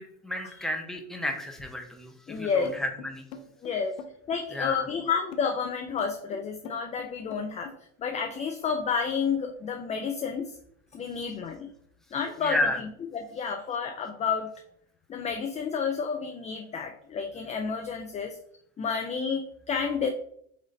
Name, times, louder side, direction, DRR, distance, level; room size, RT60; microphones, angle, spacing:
voice 1, 0.0-3.3 4.5-4.9 12.4-12.8, left 1 dB, ahead, 2 dB, 0.8 m, -32 dB
voice 2, 2.3-2.7 3.6-4.0 4.3-7.7 8.0-10.5 10.9-11.7 12.1-12.6 13.1-14.5 15.1-18.4 18.8-20.1, left 6 dB, 20° left, 4 dB, 0.3 m, -30 dB
sound 1, 2.7-7.8, left 5 dB, 80° left, 0.8 m, -44 dB
4.1 x 3.0 x 3.8 m, 0.67 s
supercardioid pair, 105°, 39 cm